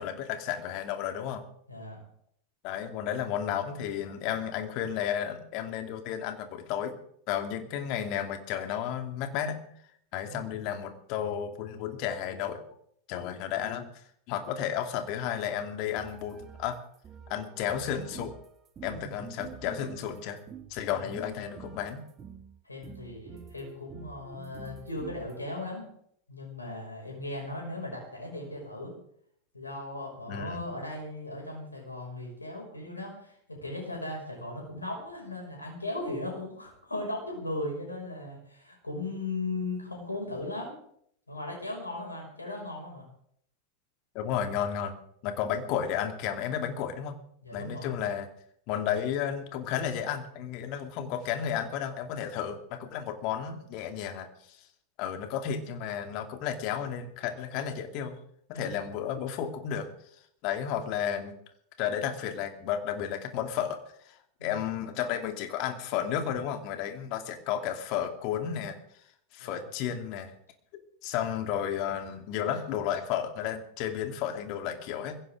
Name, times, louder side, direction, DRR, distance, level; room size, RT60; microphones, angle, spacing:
voice 1, 0.0-1.4 2.6-7.0 7.3-9.6 10.1-12.6 13.1-13.9 14.3-16.8 17.3-18.3 18.8-20.4 20.7-22.1 30.3-30.6 44.1-44.9 45.2-47.2 47.5-48.3 48.7-54.6 55.0-58.2 58.5-59.9 60.4-61.4 61.8-68.8 69.3-70.3 70.7-75.2, left 9 dB, 50° left, 6 dB, 2.5 m, -32 dB
voice 2, 1.7-2.0 10.3-10.5 18.9-19.3 20.9-21.1 22.6-25.9 26.3-28.9 29.5-40.8 41.3-43.0 47.4-48.0 58.5-58.7 64.4-64.6 69.4-69.6, left 2 dB, 85° left, 0 dB, 5.8 m, -37 dB
sound 1, 15.8-20.8 21.1-22.5 22.8-25.4, right 7 dB, 25° right, 2.1 m, -48 dB
22.0 x 16.0 x 3.7 m, 0.67 s
figure-of-eight pair, 90°, 0 cm